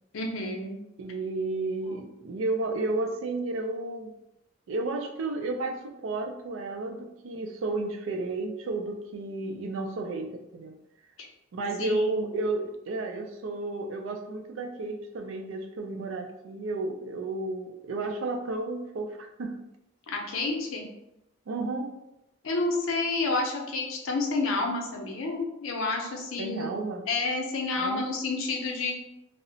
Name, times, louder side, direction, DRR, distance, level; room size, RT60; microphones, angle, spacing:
voice 1, 0.1-0.7 1.8-2.0 11.2-11.3 11.8-12.2 20.1-20.9 22.4-26.7 27.1-28.9, left 3 dB, 85° left, 1 dB, 0.6 m, -29 dB
voice 2, 1.0-4.1 4.7-10.8 11.5-19.5 21.5-21.9 26.4-27.0 27.8-28.0, right 2 dB, 75° right, 4 dB, 0.4 m, -32 dB
2.8 x 2.0 x 2.7 m, 0.87 s
head